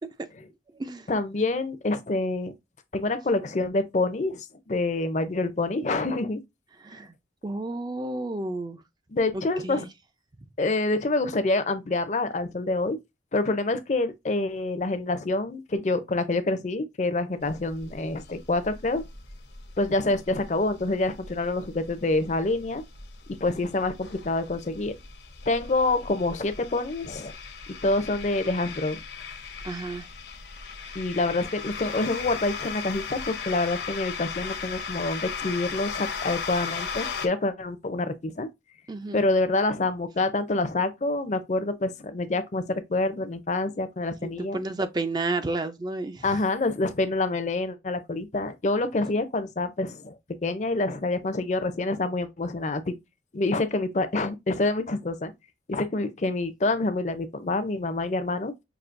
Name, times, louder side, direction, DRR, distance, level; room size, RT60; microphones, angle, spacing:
voice 1, 1.1-2.5 2.9-6.4 9.1-9.8 10.6-13.0 13.3-19.0 19.8-22.8 23.4-24.9 25.5-27.3 27.8-29.0 30.9-38.5 39.1-44.6 46.2-50.2 50.4-52.9 53.3-55.3 55.7-58.5, left 2 dB, 40° left, 0.5 m, -27 dB
voice 2, 7.4-8.8 9.3-9.9 29.6-30.1 30.8-31.0 38.9-39.2 44.2-46.4, right 2 dB, 25° right, 0.4 m, -31 dB
sound 1, 17.4-37.3, left 6 dB, 75° left, 0.9 m, -38 dB
5.9 x 2.7 x 2.5 m
head